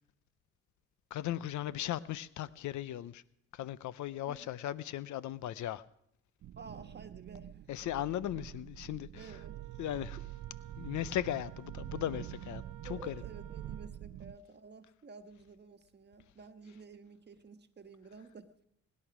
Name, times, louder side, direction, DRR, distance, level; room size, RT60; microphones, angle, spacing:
voice 1, 1.1-3.2 3.5-5.8 7.7-9.4 9.8-10.2 10.7-13.2, left 12 dB, 75° left, 0.7 m, -37 dB
sound 1, 6.4-14.4, right 13 dB, 55° right, 0.5 m, -46 dB
voice 2, 6.6-7.7 8.3-8.4 9.2-9.6 12.8-18.7, right 4 dB, 35° right, 1.5 m, -52 dB
Wind instrument woodwind instrument, 9.1-14.0, right 12 dB, 80° right, 0.9 m, -57 dB
20.5 x 11.0 x 6.1 m
cardioid pair, 90°, 30 cm